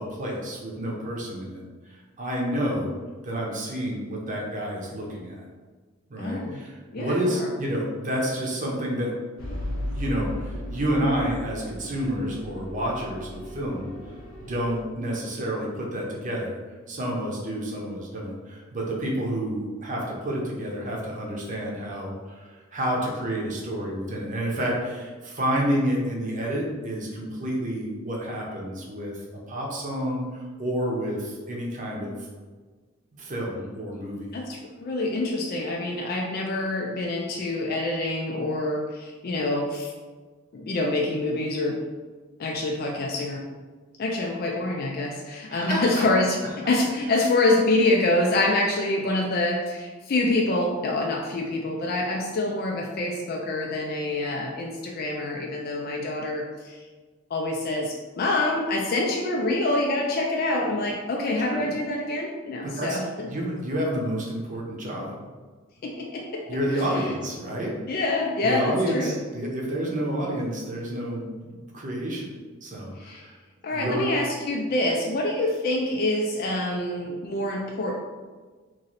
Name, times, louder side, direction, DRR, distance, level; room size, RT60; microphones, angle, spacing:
voice 1, 0.0-1.6 1.9-2.9 3.2-5.4 6.1-9.2 9.6-13.9 14.4-16.5 16.9-29.2 29.5-32.2 33.2-34.3 45.5-46.0 61.5-61.7 62.6-63.0 63.3-65.2 66.5-67.7 68.4-72.3 72.6-73.3 73.7-74.1, equal, 40° right, -2 dB, 0.8 m, -29 dB
voice 2, 6.2-6.6 6.9-7.5 34.3-39.9 40.5-41.8 42.4-43.5 44.0-56.8 57.3-63.3 65.8-66.4 66.8-67.1 67.9-69.2 73.0-73.2 73.6-77.9, left 2 dB, 45° left, 0 dB, 0.4 m, -26 dB
sound 1, 9.4-14.8, left 1 dB, 80° left, 0.7 m, -36 dB
3.0 x 2.6 x 4.0 m, 1.4 s
head